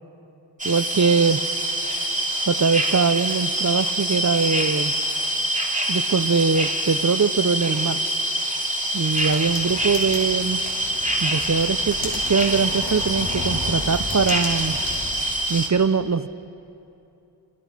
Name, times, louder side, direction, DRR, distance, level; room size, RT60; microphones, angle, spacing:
sound 1, 0.6-15.7, right 1 dB, 15° right, 2.8 m, -25 dB
voice 1, 0.6-1.4 2.5-4.9 5.9-8.0 8.9-10.6 11.2-14.8 15.5-16.3, right 5 dB, 40° right, 14 dB, 0.6 m, -22 dB
sound 2, 9.1-15.1, left 1 dB, 70° left, 5.3 m, -34 dB
28.0 x 27.0 x 5.8 m, 2.9 s
wide cardioid pair, 90°, 46 cm